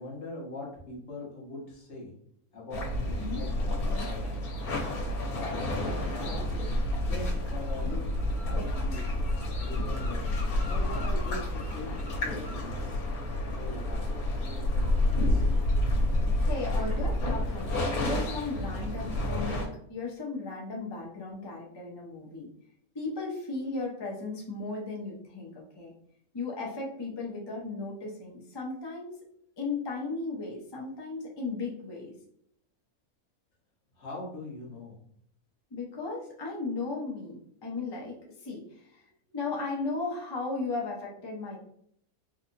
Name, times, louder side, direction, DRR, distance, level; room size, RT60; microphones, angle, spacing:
voice 1, 0.0-2.1 2.5-4.4 5.2-8.1 8.4-9.0 9.6-10.3 10.7-13.0 13.6-15.4 34.0-35.0, left 2 dB, 55° left, -3 dB, 1.3 m, -42 dB
sound 1, 2.7-19.7, left 1 dB, 90° left, 1.3 m, -29 dB
voice 2, 16.4-22.5 22.9-25.9 26.3-29.2 29.6-32.1 35.7-39.0 39.3-41.6, left 3 dB, 30° left, -2 dB, 0.5 m, -36 dB
3.9 x 2.9 x 2.6 m, 0.69 s
omnidirectional pair, 1.5 m